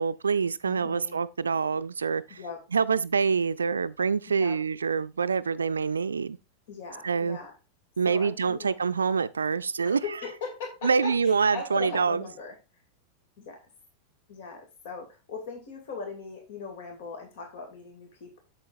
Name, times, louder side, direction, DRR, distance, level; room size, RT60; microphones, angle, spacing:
voice 1, 0.0-2.4 2.7-6.4 7.0-7.4 8.0-10.0 10.8-12.2, right 5 dB, 75° right, 0.4 m, -26 dB
voice 2, 0.6-1.2 2.3-2.6 4.3-4.6 6.7-7.5 8.0-8.7 9.8-12.8 13.4-13.6 14.3-18.4, left 4 dB, 55° left, 2.6 m, -39 dB
8.4 x 7.5 x 2.5 m
figure-of-eight pair, 90°, 0 cm